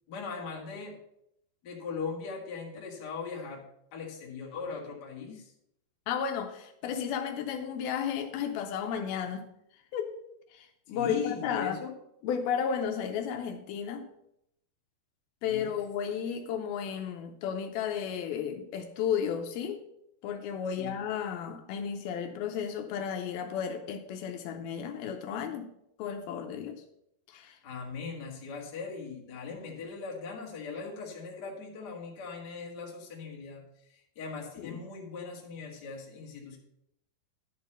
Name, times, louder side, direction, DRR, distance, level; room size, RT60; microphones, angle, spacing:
voice 1, 0.1-1.0 1.6-3.6 3.9-5.5 10.9-11.9 15.4-15.7 20.8-21.0 27.6-36.6, left 5 dB, 45° left, -1 dB, 1.3 m, -39 dB
voice 2, 6.1-9.5 9.9-10.1 10.5-11.8 12.2-14.1 15.4-19.8 20.2-25.7 26.0-26.8 27.3-27.6 34.6-34.8, left 7 dB, 80° left, 6 dB, 2.4 m, -33 dB
11.0 x 4.0 x 6.5 m, 0.78 s
omnidirectional pair, 4.5 m